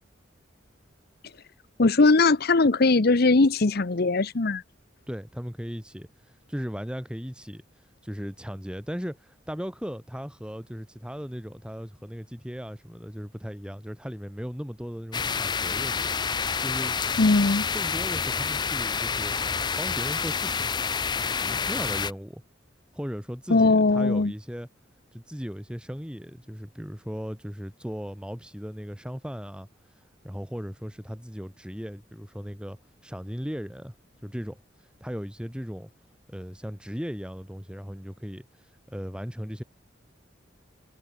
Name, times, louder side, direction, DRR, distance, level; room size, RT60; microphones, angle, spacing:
voice 1, 1.8-4.6 17.2-17.7 23.5-24.3, left 3 dB, 55° left, 0.9 m, -20 dB
voice 2, 5.1-16.1 16.6-17.1 17.7-19.4 19.8-20.6 21.4-22.4 22.9-24.7 25.1-29.7 30.2-33.9 34.2-35.9 36.3-39.6, equal, 5° right, 3.4 m, -37 dB
sound 1, 15.1-22.1, left 6 dB, 25° left, 0.4 m, -28 dB
head